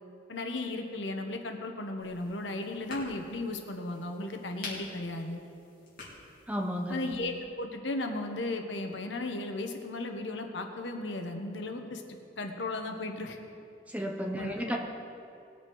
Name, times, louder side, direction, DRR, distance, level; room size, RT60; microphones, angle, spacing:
voice 1, 0.3-5.4 6.9-12.0 12.4-13.4 14.3-14.8, left 2 dB, 80° left, 5 dB, 1.2 m, -35 dB
sound 1, 2.0-7.3, left 2 dB, 50° left, 3.3 m, -48 dB
voice 2, 6.5-7.0 13.9-14.8, equal, 10° right, 1 dB, 1.0 m, -32 dB
20.0 x 7.4 x 4.8 m, 2.7 s
head